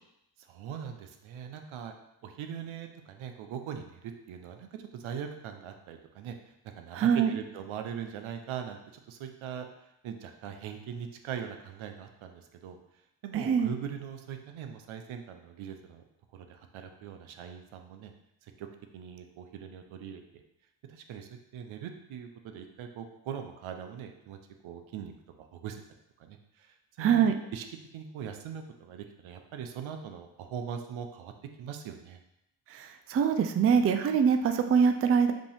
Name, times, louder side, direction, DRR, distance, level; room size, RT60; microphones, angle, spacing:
voice 1, 0.5-2.0 2.2-6.3 6.8-9.7 10.0-12.8 13.2-16.0 16.3-18.1 18.4-18.7 18.9-20.2 20.9-24.4 24.6-25.1 25.4-25.8 26.2-27.6 27.9-31.3 31.6-32.2, right 8 dB, 75° right, 5 dB, 0.7 m, -41 dB
voice 2, 6.9-7.4 13.3-13.7 27.0-27.3 32.7-35.3, right 7 dB, 30° right, 7 dB, 0.4 m, -24 dB
5.1 x 2.8 x 3.4 m, 0.83 s
cardioid pair, 70°, 49 cm